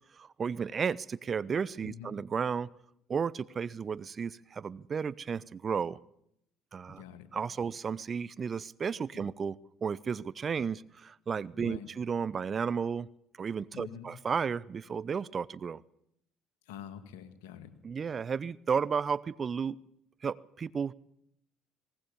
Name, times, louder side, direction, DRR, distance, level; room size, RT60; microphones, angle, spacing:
voice 1, 0.2-2.7 3.1-6.0 6.7-7.0 7.3-13.1 13.4-15.8 17.8-19.8 20.2-20.9, right 6 dB, 40° right, 19 dB, 0.7 m, -33 dB
voice 2, 1.8-2.1 6.9-7.3 7.6-7.7 9.1-9.2 11.5-11.9 13.7-14.1 16.7-17.7, left 9 dB, 80° left, 9 dB, 2.1 m, -46 dB
19.5 x 19.0 x 7.0 m, 0.75 s
hypercardioid pair, 60°, 0 cm